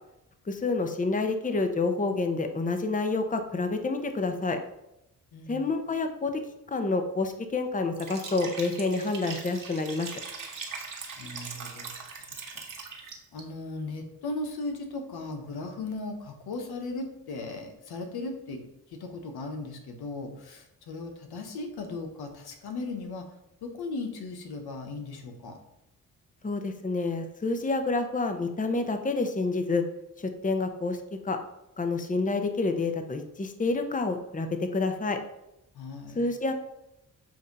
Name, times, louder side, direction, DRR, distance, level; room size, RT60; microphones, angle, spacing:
voice 1, 0.5-4.6 5.5-6.4 6.7-10.1 26.4-29.8 30.2-31.0 31.2-31.4 31.8-35.2 36.2-36.5, left 3 dB, 20° left, 6 dB, 0.8 m, -28 dB
voice 2, 5.3-5.7 11.1-11.9 12.2-12.3 12.5-12.6 13.0-18.6 18.9-23.3 23.6-25.6 35.7-36.2, left 3 dB, 90° left, 4 dB, 1.1 m, -37 dB
Liquid, 7.9-13.4, right 4 dB, 60° right, 1.4 m, -40 dB
7.7 x 2.7 x 5.3 m, 0.86 s
cardioid pair, 80°, 37 cm